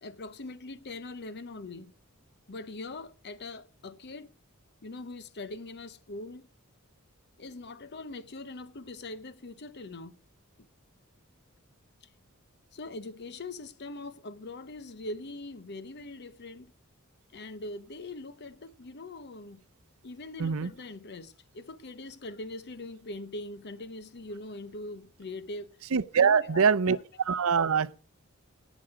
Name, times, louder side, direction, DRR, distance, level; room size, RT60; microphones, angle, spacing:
voice 1, 0.0-1.9 2.5-4.3 4.8-6.5 7.4-10.1 12.7-16.7 17.3-19.6 20.0-25.8 26.2-27.0, left 2 dB, 50° left, 0.8 m, -42 dB
voice 2, 25.9-27.0 27.3-27.9, right 6 dB, 70° right, 0.6 m, -24 dB
17.5 x 6.3 x 4.8 m
head